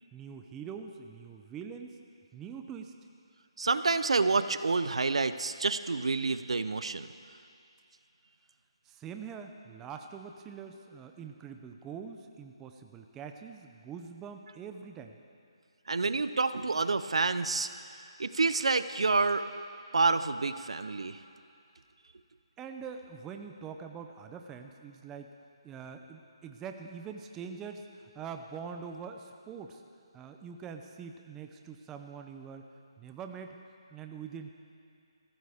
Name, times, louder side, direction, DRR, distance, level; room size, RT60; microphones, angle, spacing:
voice 1, 0.1-2.0 2.3-2.9 8.8-15.2 22.6-25.3 25.6-27.9 28.1-29.8 30.1-32.7 33.0-33.6 33.9-34.5, right 6 dB, 10° right, 5 dB, 0.6 m, -44 dB
voice 2, 3.6-7.1 15.9-17.7 18.2-19.4 19.9-21.2, right 3 dB, 80° right, 12 dB, 0.7 m, -28 dB
23.0 x 16.0 x 3.6 m, 2.4 s
hypercardioid pair, 165°, 3 cm